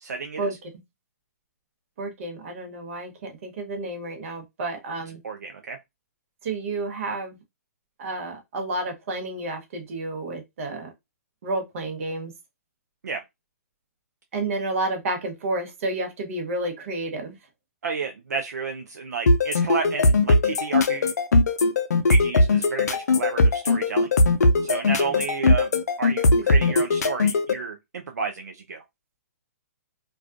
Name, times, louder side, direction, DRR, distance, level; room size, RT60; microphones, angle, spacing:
voice 1, 0.0-0.6 5.2-5.8 13.0-13.2 17.8-21.1 22.1-24.1 24.6-25.7 26.0-28.8, right 5 dB, 85° right, 0.4 m, -31 dB
voice 2, 2.0-5.2 6.4-7.4 8.0-10.9 11.4-12.3 14.3-17.4 25.0-25.1 26.6-26.8, right 2 dB, 55° right, 0.9 m, -30 dB
sound 1, 19.3-27.5, left 2 dB, 80° left, 0.4 m, -19 dB
2.3 x 2.3 x 2.4 m
hypercardioid pair, 135°, 9 cm